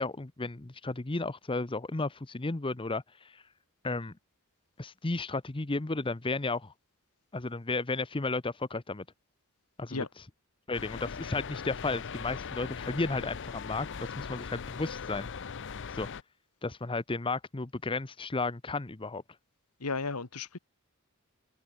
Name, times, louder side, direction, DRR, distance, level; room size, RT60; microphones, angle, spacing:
voice 1, 0.0-3.4 3.8-4.1 4.8-6.7 7.3-9.0 9.8-10.0 10.7-15.3 15.9-16.1 16.6-19.2, left 3 dB, 25° left, 0.8 m, -33 dB
sound 1, 10.7-16.2, left 6 dB, 55° left, 0.7 m, -40 dB
voice 2, 19.8-20.6, left 4 dB, 85° left, 1.8 m, -34 dB
head